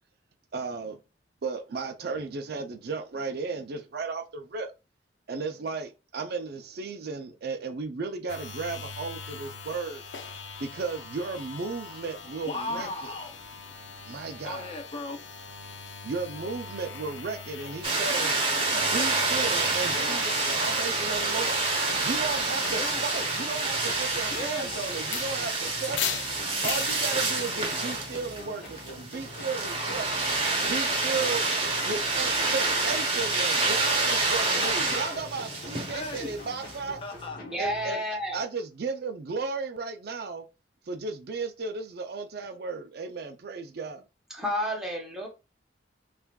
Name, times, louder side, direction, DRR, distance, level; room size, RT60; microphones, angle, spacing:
voice 1, 0.5-1.0 1.4-4.7 5.3-10.0 10.6-13.1 14.1-14.7 16.0-18.4 18.7-26.3 26.6-30.2 30.6-37.0 37.6-40.5 40.9-44.0, right 4 dB, 60° right, 0.4 m, -35 dB
sound 1, 8.3-27.7, left 6 dB, 90° left, 0.6 m, -41 dB
voice 2, 12.4-14.1 14.4-15.4 19.9-20.8 22.7-23.3 24.3-24.9 34.5-35.2 35.9-36.3 37.0-37.5, left 3 dB, 30° left, 0.4 m, -38 dB
sound 2, 17.8-36.8, right 3 dB, 30° right, 1.0 m, -28 dB
sound 3, 21.9-38.4, left 2 dB, 55° left, 1.3 m, -45 dB
voice 3, 37.4-38.4 44.3-45.3, equal, 5° right, 0.9 m, -31 dB
5.6 x 2.5 x 2.3 m
head